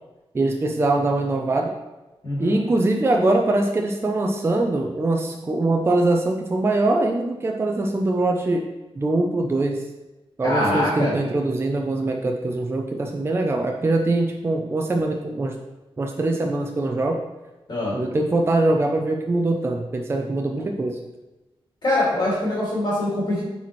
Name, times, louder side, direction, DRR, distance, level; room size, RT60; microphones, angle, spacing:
voice 1, 0.3-1.7 2.4-8.6 8.9-9.8 10.4-15.6 16.0-17.2 17.9-21.0, right 2 dB, 25° right, 2 dB, 0.5 m, -22 dB
voice 2, 2.2-2.6 10.4-11.1 17.7-17.9 21.8-23.4, left 1 dB, 50° left, -7 dB, 2.3 m, -23 dB
8.2 x 4.2 x 3.1 m, 1.1 s
wide cardioid pair, 180°, 10 cm